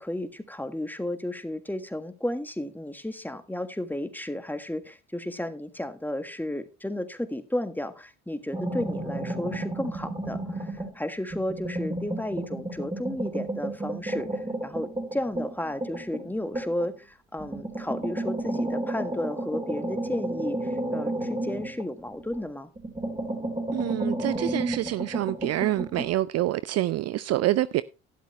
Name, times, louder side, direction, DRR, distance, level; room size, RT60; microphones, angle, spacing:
voice 1, 0.0-22.7, left 1 dB, 5° left, 1.5 m, -33 dB
sound 1, 8.5-11.0 11.3-16.9 17.4-22.4 22.8-26.1, right 1 dB, 15° right, 4.2 m, -32 dB
voice 2, 23.7-27.8, right 15 dB, 45° right, 0.4 m, -27 dB
12.0 x 11.0 x 3.1 m
hypercardioid pair, 50°, 36 cm